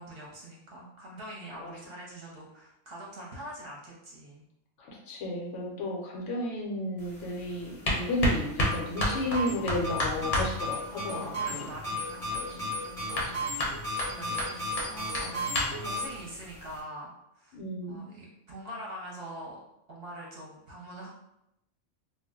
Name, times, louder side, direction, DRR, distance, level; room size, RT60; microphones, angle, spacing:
voice 1, 0.0-4.5 5.7-5.9 11.0-12.3 13.8-19.6 19.9-21.1, right 1 dB, 55° right, -4 dB, 0.8 m, -44 dB
voice 2, 4.8-11.6 12.3-12.5 13.1-13.4 14.0-14.1 17.5-18.0, left 1 dB, 75° left, -1 dB, 0.9 m, -33 dB
sound 1, 7.0-16.8, left 1 dB, 40° left, 0.7 m, -34 dB
sound 2, 8.6-16.1, left 1 dB, 15° right, 0.6 m, -35 dB
2.3 x 2.1 x 3.6 m, 0.82 s
omnidirectional pair, 1.3 m